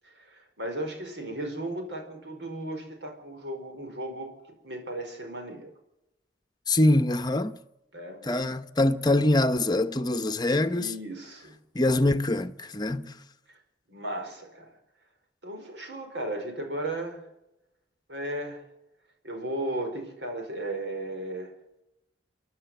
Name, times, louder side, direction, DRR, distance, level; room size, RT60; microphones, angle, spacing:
voice 1, 0.0-4.3 4.6-5.7 7.9-8.2 10.7-11.5 13.5-13.6 13.9-14.7 15.4-17.2 18.1-18.7 19.2-21.5, right 1 dB, 75° right, 4.9 m, -35 dB
voice 2, 6.7-7.5 8.2-10.9 11.7-13.1, left 2 dB, 25° left, 0.9 m, -24 dB
29.0 x 11.0 x 7.9 m
head